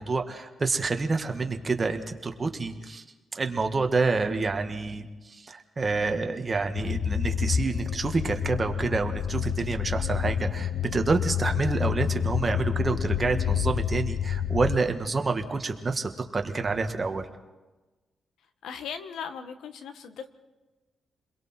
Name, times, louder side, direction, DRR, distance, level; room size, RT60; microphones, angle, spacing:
voice 1, 0.0-3.0 3.3-17.3, right 3 dB, 30° right, 6 dB, 1.8 m, -28 dB
sound 1, 6.7-14.8, left 8 dB, 70° left, 0.8 m, -28 dB
voice 2, 18.6-20.3, left 7 dB, 90° left, 9 dB, 1.4 m, -38 dB
30.0 x 22.0 x 4.5 m, 1.2 s
cardioid pair, 100°, 0 cm